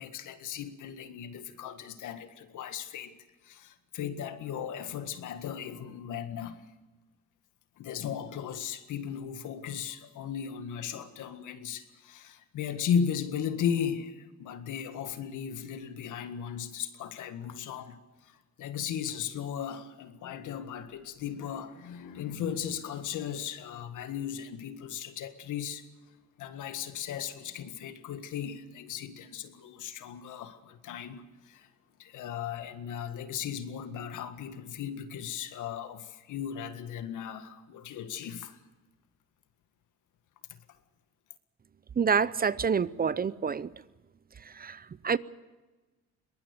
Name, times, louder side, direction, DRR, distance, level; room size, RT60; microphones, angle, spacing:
voice 1, 0.0-3.1 3.4-6.6 7.8-18.0 18.2-25.8 26.4-31.7 32.0-38.6 40.5-40.6, left 8 dB, 80° left, 1.8 m, -36 dB
voice 2, 42.0-43.7 44.4-45.2, right 6 dB, 30° right, 0.6 m, -28 dB
22.5 x 19.5 x 6.7 m
cardioid pair, 90°, 30 cm